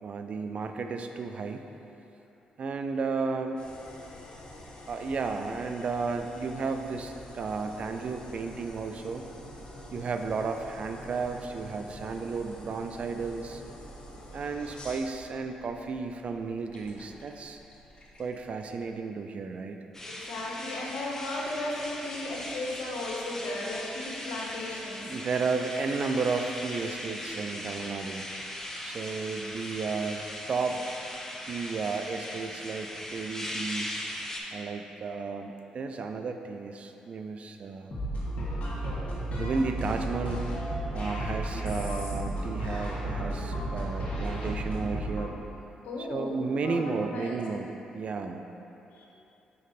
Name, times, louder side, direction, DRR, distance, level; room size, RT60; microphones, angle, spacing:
voice 1, 0.0-1.7 2.6-3.6 4.9-9.2 9.9-13.6 14.3-17.6 18.2-19.8 25.0-28.3 28.8-30.8 31.4-34.0 34.5-37.9 39.4-45.4 46.0-48.4, right 4 dB, 55° right, 6 dB, 0.4 m, -33 dB
sound 1, 3.6-18.9, left 1 dB, 40° left, 1.0 m, -47 dB
sound 2, 19.9-34.4, left 1 dB, 20° left, 0.9 m, -39 dB
voice 2, 20.1-25.1 45.8-46.4 46.6-47.4 48.9-49.1, left 2 dB, 75° left, -3 dB, 1.0 m, -35 dB
sound 3, 37.9-45.3, right 1 dB, 55° left, 1.4 m, -33 dB
5.3 x 4.9 x 4.1 m, 2.9 s
cardioid pair, 70°, 2 cm